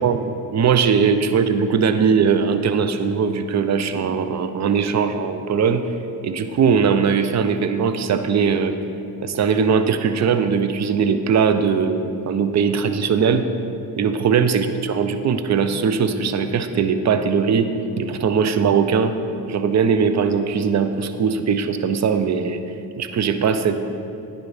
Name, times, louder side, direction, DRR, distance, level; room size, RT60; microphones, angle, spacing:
voice 1, 0.0-5.8 6.2-8.8 9.2-13.5 14.0-17.7 18.0-19.2 19.5-22.6 23.0-23.8, right 6 dB, 40° right, 9 dB, 0.5 m, -20 dB
9.8 x 4.1 x 3.3 m, 2.6 s
hypercardioid pair, 50°, 43 cm